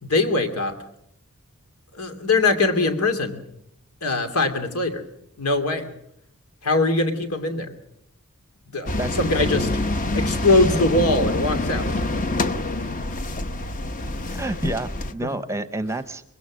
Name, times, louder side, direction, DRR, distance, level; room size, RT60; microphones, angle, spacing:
voice 1, 0.0-0.8 1.9-3.4 4.0-5.0 5.4-5.9 6.6-7.7 8.7-9.7 10.1-11.9 15.2-15.3, left 2 dB, 90° left, 7 dB, 2.7 m, -22 dB
sound 1, 8.9-15.1, left 2 dB, 35° left, 0.9 m, -26 dB
voice 2, 14.3-16.2, right 2 dB, 15° right, 12 dB, 0.8 m, -29 dB
24.0 x 21.0 x 6.3 m, 0.76 s
head